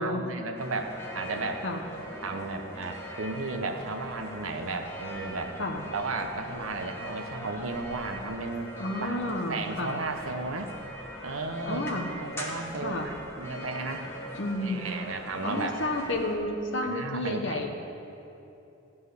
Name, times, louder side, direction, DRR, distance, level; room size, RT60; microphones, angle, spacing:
voice 1, 0.0-1.6 2.2-5.6 5.9-8.7 9.0-10.7 11.2-14.0 14.6-15.7 16.8-17.7, right 3 dB, 80° right, 5 dB, 1.0 m, -34 dB
sound 1, 0.5-16.4, equal, 10° left, 1.2 m, -41 dB
voice 2, 8.8-10.0 11.6-12.1 12.8-13.1 14.4-14.9 15.4-17.7, left 1 dB, 60° left, 2 dB, 1.0 m, -31 dB
14.0 x 5.5 x 8.3 m, 2.8 s
head